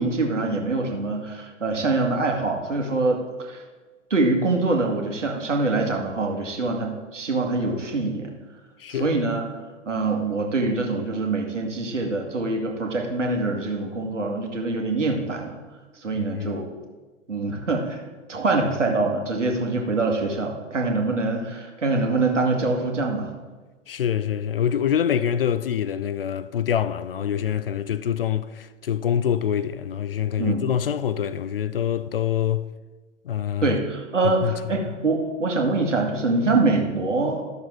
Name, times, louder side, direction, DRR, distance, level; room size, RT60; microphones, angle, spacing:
voice 1, 0.0-3.6 4.1-8.3 8.9-9.4 9.9-15.6 16.0-16.8 17.3-18.0 18.3-23.3 30.4-30.6 33.6-37.4, right 3 dB, 70° right, 1.9 m, -24 dB
voice 2, 8.8-9.2 16.2-16.6 23.9-32.7 33.3-33.8 34.4-34.6, left 9 dB, 50° left, 0.4 m, -25 dB
12.5 x 6.6 x 4.6 m
figure-of-eight pair, 110°, 38 cm